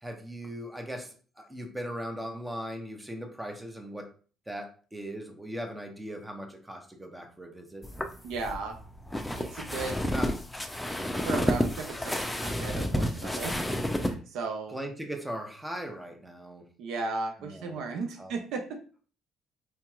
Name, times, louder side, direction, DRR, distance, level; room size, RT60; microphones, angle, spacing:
voice 1, 0.0-4.1 4.5-7.9 9.9-10.3 14.7-16.7 17.4-17.7 18.2-18.3, equal, 10° right, 4 dB, 0.9 m, -39 dB
sound 1, 7.8-14.1, left 1 dB, 10° left, 0.6 m, -30 dB
voice 2, 8.2-8.8 9.4-10.0 11.2-13.6 13.9-14.8 16.8-18.8, right 4 dB, 75° right, 5 dB, 0.6 m, -35 dB
4.5 x 2.8 x 2.4 m, 0.39 s
supercardioid pair, 65°, 0 cm